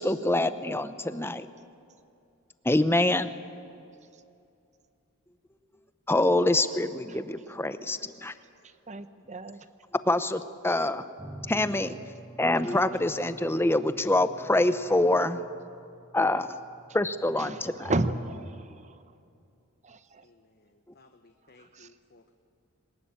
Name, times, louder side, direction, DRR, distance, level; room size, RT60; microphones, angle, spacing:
voice 1, 0.0-1.5 2.6-3.3 6.1-8.3 10.0-11.0 11.5-12.0 12.4-15.4 16.1-16.6 16.9-17.9, left 2 dB, 10° left, 12 dB, 0.7 m, -25 dB
voice 2, 8.9-9.6 17.4-19.0 19.8-20.2 21.6-21.9, right 2 dB, 30° right, 11 dB, 0.9 m, -33 dB
sound 1, 11.2-18.8, right 1 dB, 15° right, 1.2 m, -50 dB
voice 3, 20.2-22.3, left 2 dB, 45° left, 6 dB, 1.0 m, -59 dB
22.5 x 20.0 x 8.9 m, 2.6 s
head